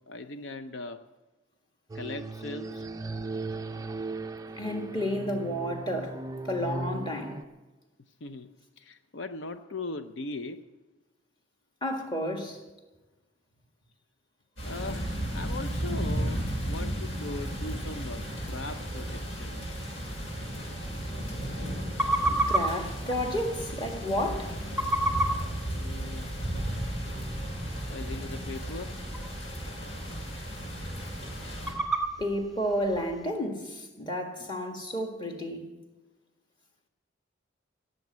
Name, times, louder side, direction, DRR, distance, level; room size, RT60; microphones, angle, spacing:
voice 1, 0.1-1.0 1.9-2.9 8.2-10.6 14.6-19.7 25.7-26.3 27.9-29.0 34.4-34.5, left 2 dB, 70° left, 0.6 m, -39 dB
sound 1, 1.9-7.4, right 3 dB, 20° right, 0.4 m, -37 dB
voice 2, 4.6-7.4 11.8-12.6 22.5-24.6 32.2-35.7, equal, 25° left, 1.8 m, -31 dB
sound 2, 14.6-31.7, equal, 85° left, 6.8 m, -34 dB
sound 3, 19.8-33.3, right 1 dB, ahead, 1.7 m, -35 dB
16.5 x 7.8 x 8.3 m
head